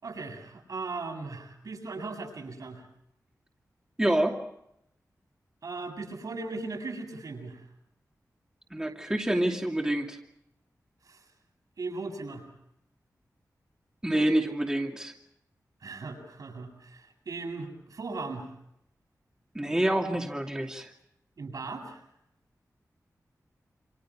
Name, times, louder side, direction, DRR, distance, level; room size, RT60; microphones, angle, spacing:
voice 1, 0.0-2.8 5.6-7.6 11.0-11.2 11.8-12.5 15.8-18.5 21.4-22.0, right 3 dB, 70° right, 3 dB, 7.7 m, -38 dB
voice 2, 4.0-4.4 8.7-10.2 14.0-15.1 19.5-20.9, right 1 dB, 10° right, 1 dB, 2.6 m, -27 dB
28.5 x 27.5 x 4.9 m, 0.77 s
wide cardioid pair, 115°, 6 cm